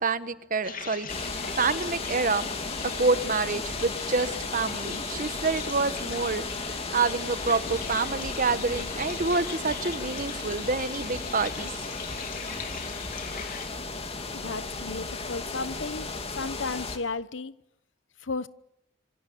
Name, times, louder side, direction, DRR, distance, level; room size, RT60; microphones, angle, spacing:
voice 1, 0.0-1.1 1.6-2.5 3.0-6.4 6.9-11.7, right 4 dB, 45° right, 1.4 m, -27 dB
sound 1, 0.6-13.7, left 6 dB, 50° left, 2.9 m, -41 dB
sound 2, 1.1-17.0, left 3 dB, 35° left, 2.9 m, -35 dB
sound 3, 7.6-10.3 10.5-13.5, equal, 5° right, 4.2 m, -48 dB
voice 2, 14.3-16.1 16.3-17.5 18.2-18.5, left 4 dB, 75° left, 1.0 m, -33 dB
27.0 x 24.5 x 8.6 m
head